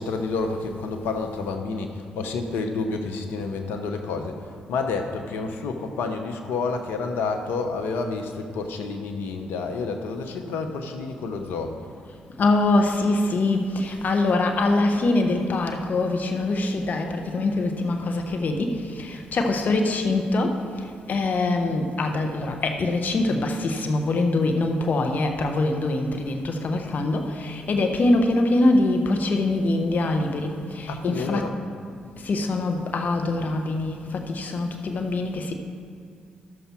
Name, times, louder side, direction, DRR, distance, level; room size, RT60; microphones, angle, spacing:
voice 1, 0.0-11.7 30.9-31.6, left 4 dB, 75° left, 5 dB, 0.9 m, -29 dB
voice 2, 12.4-20.6 21.1-31.5 32.2-35.5, left 2 dB, 50° left, 4 dB, 1.1 m, -23 dB
12.5 x 6.8 x 4.5 m, 2.2 s
hypercardioid pair, 40°, 4 cm